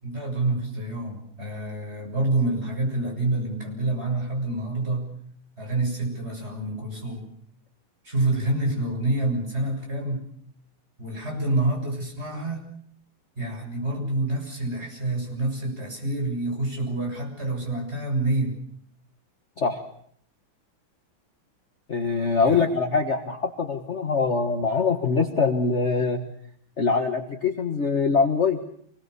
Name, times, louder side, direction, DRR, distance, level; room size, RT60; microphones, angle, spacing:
voice 1, 0.0-5.1 5.6-7.3 8.0-10.3 11.0-12.6 13.4-18.6 22.4-22.6, right 2 dB, 30° right, 1 dB, 7.6 m, -27 dB
voice 2, 21.9-26.2 26.8-28.6, left 4 dB, 35° left, 5 dB, 1.6 m, -23 dB
28.0 x 21.5 x 6.9 m, 0.63 s
omnidirectional pair, 2.3 m